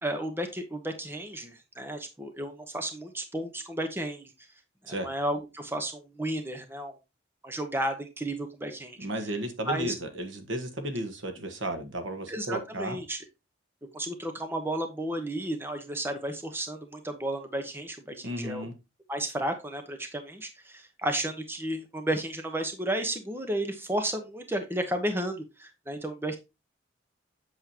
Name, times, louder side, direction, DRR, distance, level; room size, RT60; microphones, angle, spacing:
voice 1, 0.0-4.3 4.9-6.9 7.4-9.0 9.7-9.9 12.3-13.2 13.9-18.7 19.1-26.4, right 1 dB, 10° right, 6 dB, 1.0 m, -33 dB
voice 2, 9.0-13.0 18.2-18.7, right 1 dB, 80° right, 7 dB, 1.4 m, -34 dB
8.1 x 6.5 x 2.9 m, 0.25 s
head